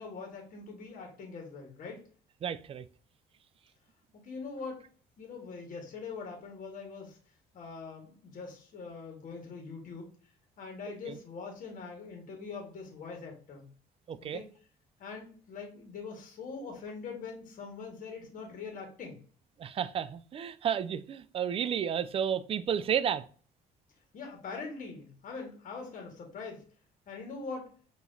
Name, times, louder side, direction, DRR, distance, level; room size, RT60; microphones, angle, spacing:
voice 1, 0.0-2.0 4.1-4.8 5.2-7.2 7.5-10.1 10.6-13.6 14.3-14.5 15.0-19.2 24.1-26.6 27.1-27.7, left 4 dB, 50° left, 1.6 m, -43 dB
voice 2, 2.4-2.8 11.1-11.2 14.1-14.4 19.6-23.2, right 8 dB, 35° right, 0.4 m, -32 dB
5.8 x 3.0 x 2.7 m
cardioid pair, 110°, 17 cm